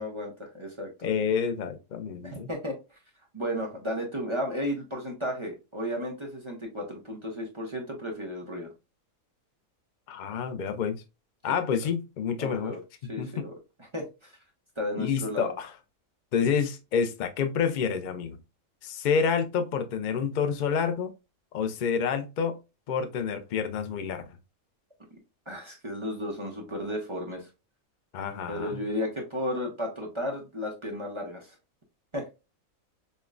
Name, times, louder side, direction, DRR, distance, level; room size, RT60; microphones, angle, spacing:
voice 1, 0.0-0.9 2.2-2.7 3.3-8.7 11.5-11.6 12.4-12.8 13.1-13.5 13.9-14.3 14.8-15.5 25.5-27.5 28.5-31.6 32.1-32.2, equal, 30° right, 0.6 m, -33 dB
voice 2, 1.0-2.5 10.1-11.0 11.4-12.7 13.2-13.4 15.0-15.7 16.3-18.4 18.8-21.1 21.5-22.6 22.9-24.3 28.1-28.8, left 6 dB, 70° left, 0.4 m, -28 dB
5.3 x 2.1 x 2.4 m
omnidirectional pair, 1.5 m